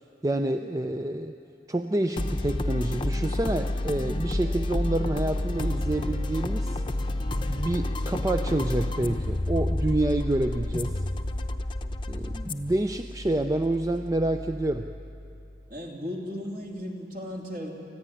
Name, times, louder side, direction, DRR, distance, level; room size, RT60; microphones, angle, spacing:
voice 1, 0.2-1.4 1.7-6.8 7.5-11.0 12.1-14.9, right 1 dB, 20° right, 7 dB, 0.5 m, -28 dB
sound 1, 2.2-15.6, left 1 dB, 25° left, 0.8 m, -30 dB
voice 2, 3.9-4.3 12.1-12.5 15.7-17.7, equal, 45° right, 0 dB, 3.0 m, -37 dB
26.5 x 15.0 x 9.8 m, 2.7 s
head